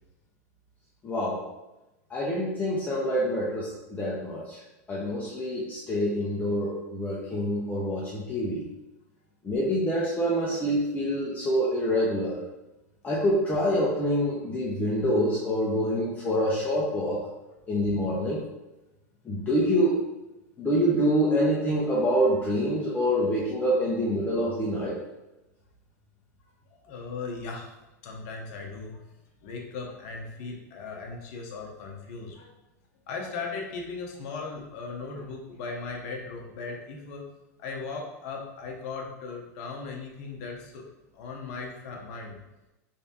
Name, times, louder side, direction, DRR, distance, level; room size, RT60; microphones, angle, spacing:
voice 1, 1.0-1.4 2.1-4.6 4.9-8.7 9.4-12.4 13.0-17.2 17.7-18.4 19.2-20.0 20.6-25.0, equal, 15° left, -6 dB, 0.8 m, -26 dB
voice 2, 26.8-27.7 28.0-29.0 29.4-32.5 33.1-37.2 37.6-40.8 41.1-42.4, left 4 dB, 55° left, 1 dB, 0.9 m, -37 dB
3.4 x 3.3 x 2.9 m, 0.99 s
hypercardioid pair, 105°, 10 cm